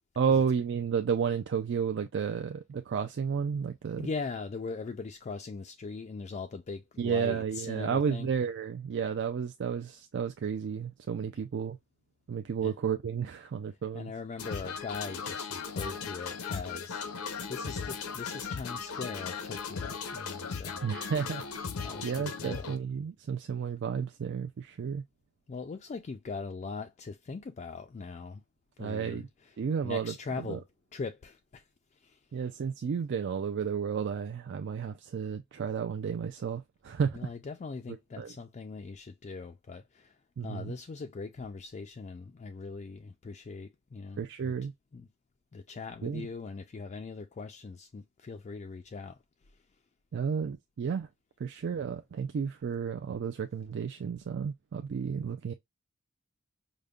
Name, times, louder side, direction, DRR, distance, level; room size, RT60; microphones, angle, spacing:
voice 1, 0.2-4.1 7.0-11.8 12.3-14.1 20.8-21.4 22.0-25.0 28.8-29.3 29.6-30.1 30.5-30.6 32.3-37.3 38.2-38.3 40.4-40.7 44.2-44.7 46.0-46.3 50.1-51.1 51.4-55.5, right 6 dB, 55° right, 0.3 m, -32 dB
voice 2, 4.0-8.3 12.6-12.7 13.9-17.2 17.5-21.1 21.8-22.8 25.5-28.4 28.8-29.6 29.8-30.6 30.9-32.2 37.1-44.5 44.9-45.1 45.5-49.2 49.5-49.6, left 4 dB, 35° left, 0.3 m, -41 dB
sound 1, 14.4-22.8, left 5 dB, 85° left, 0.7 m, -37 dB
5.1 x 2.1 x 2.3 m
head